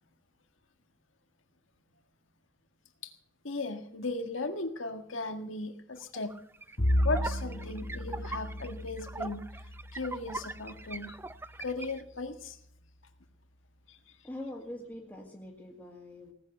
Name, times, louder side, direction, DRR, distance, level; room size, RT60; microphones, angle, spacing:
voice 1, 3.4-6.3 7.0-9.4 9.9-11.2 11.6-12.6 13.9-14.0, left 3 dB, 80° left, 7 dB, 1.7 m, -36 dB
sound 1, 6.0-12.0, right 3 dB, 10° right, 0.5 m, -42 dB
Bowed string instrument, 6.8-11.4, equal, 55° left, 1.6 m, -33 dB
voice 2, 14.2-16.3, left 1 dB, 10° left, -4 dB, 2.0 m, -43 dB
18.5 x 8.1 x 8.0 m, 0.68 s
head